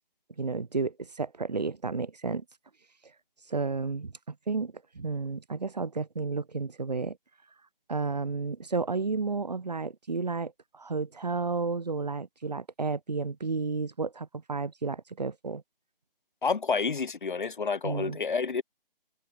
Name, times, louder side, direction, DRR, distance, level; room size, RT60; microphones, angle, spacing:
voice 1, 0.4-2.4 3.5-7.2 7.9-15.6 17.8-18.2, right 4 dB, 45° right, 0.5 m, -32 dB
voice 2, 16.4-18.6, left 5 dB, 55° left, 0.8 m, -29 dB
figure-of-eight pair, 175°, 29 cm